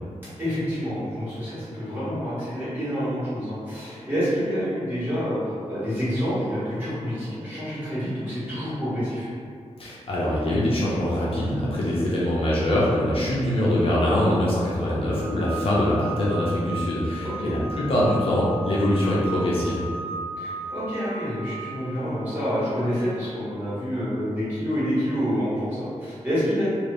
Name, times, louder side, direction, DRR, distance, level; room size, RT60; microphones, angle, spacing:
voice 1, 0.4-9.3 17.2-17.5 20.4-26.7, equal, 15° right, -13 dB, 1.3 m, -28 dB
voice 2, 9.8-19.8, left 1 dB, 50° left, -6 dB, 0.5 m, -23 dB
sound 1, 15.1-22.9, right 2 dB, 15° left, 0.7 m, -37 dB
2.8 x 2.3 x 3.3 m, 2.2 s
wide cardioid pair, 180°, 12 cm